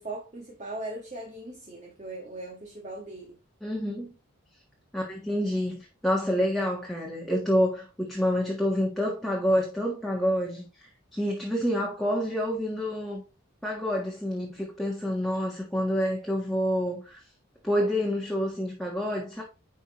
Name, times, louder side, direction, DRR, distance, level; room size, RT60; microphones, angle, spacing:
voice 1, 0.0-3.4, right 2 dB, 35° right, 1.7 m, -39 dB
voice 2, 3.6-4.1 4.9-13.2 13.6-17.2 17.6-19.4, equal, ahead, 1.5 m, -28 dB
10.0 x 5.6 x 3.1 m
head